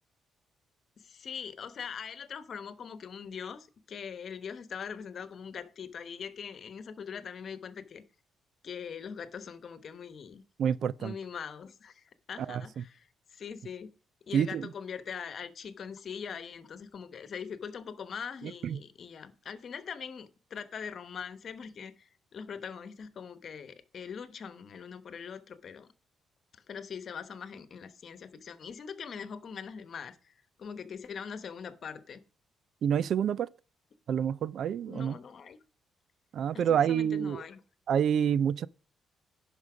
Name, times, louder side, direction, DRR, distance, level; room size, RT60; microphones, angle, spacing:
voice 1, 1.0-8.0 8.6-10.4 11.0-13.9 14.3-25.9 26.5-32.2 34.9-35.6 36.5-37.6, left 6 dB, 55° left, 1.1 m, -42 dB
voice 2, 10.6-11.2 12.5-12.8 14.3-14.7 18.6-18.8 32.8-33.5 34.1-35.1 36.3-37.4 37.9-38.7, right 8 dB, 65° right, 0.4 m, -28 dB
11.0 x 5.4 x 4.9 m
cardioid pair, 90°, 0 cm